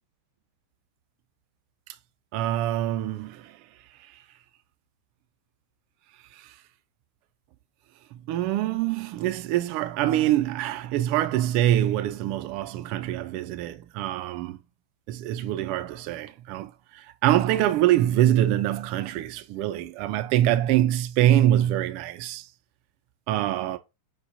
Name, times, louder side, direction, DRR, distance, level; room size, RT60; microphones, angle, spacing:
voice 1, 2.3-3.6 6.3-6.5 8.1-14.6 15.1-22.5 23.3-23.8, right 13 dB, 45° right, 0.3 m, -24 dB
4.7 x 2.1 x 2.6 m
figure-of-eight pair, 90°, 0 cm